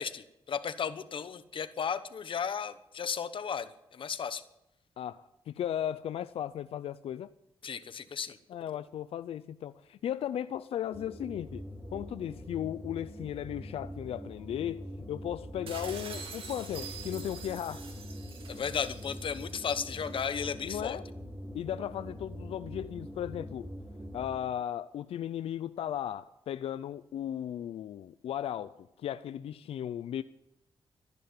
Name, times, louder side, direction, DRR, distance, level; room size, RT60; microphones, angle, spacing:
voice 1, 0.0-4.4 7.6-8.4 18.5-21.0, left 7 dB, 60° left, 1.1 m, -35 dB
voice 2, 5.0-7.3 8.5-11.6 11.9-17.8 20.6-21.0 21.5-23.7 24.1-30.2, left 10 dB, 90° left, 0.5 m, -36 dB
sound 1, 10.9-24.6, equal, 25° right, 5.4 m, -44 dB
sound 2, 15.7-20.4, right 5 dB, 70° right, 2.9 m, -46 dB
13.5 x 11.0 x 9.4 m
cardioid pair, 85°, 10 cm